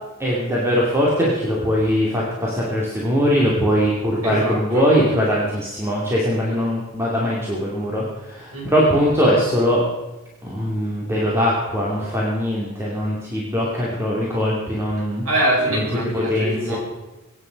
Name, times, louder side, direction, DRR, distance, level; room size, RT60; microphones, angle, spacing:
voice 1, 0.2-9.8 10.4-15.3 15.7-15.8 16.1-16.8, equal, 10° right, -5 dB, 2.5 m, -21 dB
voice 2, 4.2-4.9 8.5-8.9 15.2-16.8, right 1 dB, 75° right, -2 dB, 5.7 m, -24 dB
22.5 x 9.8 x 5.2 m, 1.0 s
head